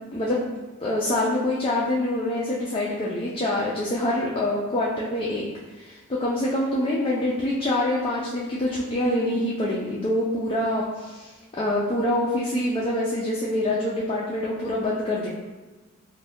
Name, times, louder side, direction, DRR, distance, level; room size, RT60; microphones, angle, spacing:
voice 1, 0.8-5.4 5.8-11.3 11.6-15.3, left 1 dB, 25° left, -5 dB, 0.4 m, -25 dB
2.6 x 2.2 x 3.4 m, 1.2 s
head